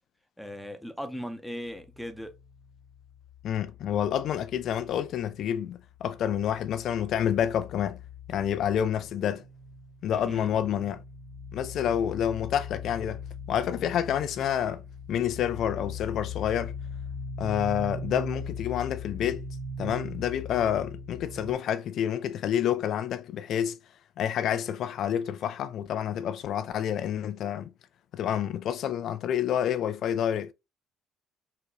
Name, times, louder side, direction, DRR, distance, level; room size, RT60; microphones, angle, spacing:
voice 1, 0.4-2.4 10.1-10.5, equal, ahead, 0.7 m, -38 dB
sound 1, 1.7-5.5 5.7-21.5, left 3 dB, 40° right, 1.9 m, -41 dB
voice 2, 3.4-8.0 8.3-9.5 10.0-11.0 11.5-13.2 13.5-14.8 15.1-16.7 17.4-19.5 19.8-23.8 24.2-27.7 28.1-30.5, left 9 dB, 65° left, 0.4 m, -28 dB
3.8 x 2.2 x 3.1 m
supercardioid pair, 65°, 0 cm